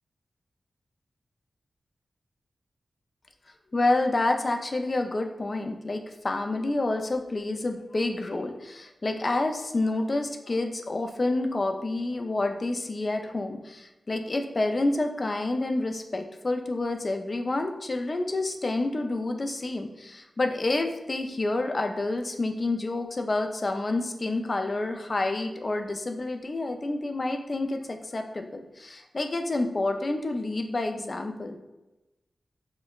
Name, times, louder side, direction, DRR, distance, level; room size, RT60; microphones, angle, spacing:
voice 1, 3.7-31.6, left 2 dB, 40° left, 5 dB, 0.3 m, -28 dB
4.9 x 2.1 x 2.3 m, 1.0 s
wide cardioid pair, 80°, 0 cm